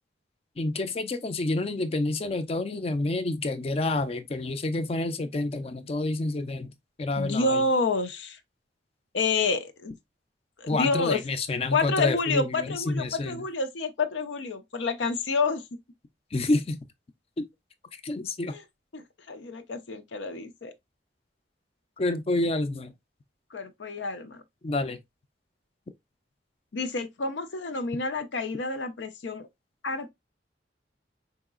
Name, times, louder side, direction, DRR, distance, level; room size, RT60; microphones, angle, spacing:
voice 1, 0.6-6.7 7.0-7.6 10.7-13.4 16.3-16.8 17.4-17.5 18.0-18.5 22.0-22.9 24.6-25.0, left 2 dB, 35° left, 0.4 m, -28 dB
voice 2, 7.2-8.4 9.1-10.0 10.6-11.2 11.7-15.6 18.5-18.6 18.9-20.7 23.5-24.4 26.7-29.5 29.8-30.1, left 3 dB, 85° left, 0.6 m, -29 dB
4.6 x 2.9 x 2.3 m
head